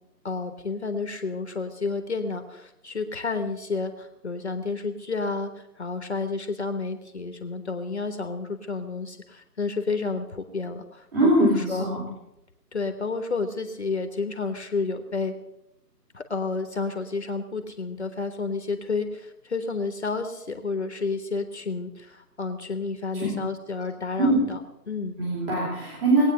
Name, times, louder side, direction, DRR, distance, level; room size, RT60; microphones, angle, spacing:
voice 1, 0.2-11.9 12.7-15.3 16.1-25.1, left 4 dB, 40° left, 8 dB, 1.2 m, -30 dB
voice 2, 11.1-12.1 23.1-23.3 24.2-24.5 25.2-26.2, right 2 dB, 35° right, -5 dB, 4.3 m, -22 dB
20.0 x 8.9 x 6.6 m, 0.88 s
figure-of-eight pair, 160°, 50 cm